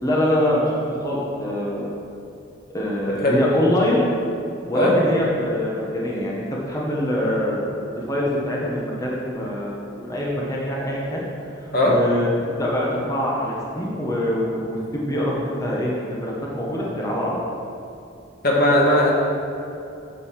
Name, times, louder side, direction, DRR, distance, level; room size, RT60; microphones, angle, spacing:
voice 1, 0.0-1.9 2.7-4.0 4.7-7.7 7.9-11.2 11.8-12.3 12.6-17.4, equal, 20° left, -5 dB, 1.5 m, -24 dB
voice 2, 18.4-19.1, left 1 dB, 50° left, -3 dB, 1.9 m, -17 dB
9.2 x 6.8 x 6.6 m, 2.7 s
head